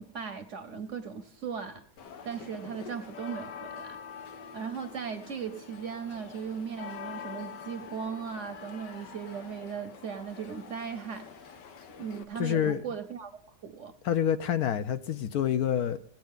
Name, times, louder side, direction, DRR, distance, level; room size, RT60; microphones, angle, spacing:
voice 1, 0.0-1.9 2.2-4.0 4.5-11.5 12.0-13.9, right 7 dB, 55° right, 0.9 m, -38 dB
sound 1, 2.0-12.2, left 7 dB, 85° left, 1.6 m, -45 dB
voice 2, 12.4-12.8 14.0-16.0, left 9 dB, 70° left, 1.0 m, -27 dB
17.5 x 8.9 x 3.6 m
omnidirectional pair, 1.8 m